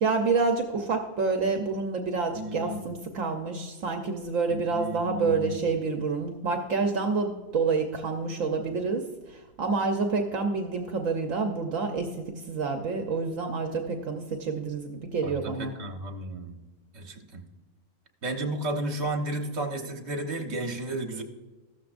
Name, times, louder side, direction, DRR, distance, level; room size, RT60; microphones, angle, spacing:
voice 1, 0.0-15.7, right 4 dB, 75° right, 4 dB, 1.2 m, -28 dB
voice 2, 2.3-2.8 4.5-5.6 15.2-16.6 16.9-17.4 18.2-21.2, right 1 dB, 55° right, 4 dB, 1.5 m, -33 dB
14.5 x 13.0 x 2.5 m, 1.2 s
omnidirectional pair, 1.4 m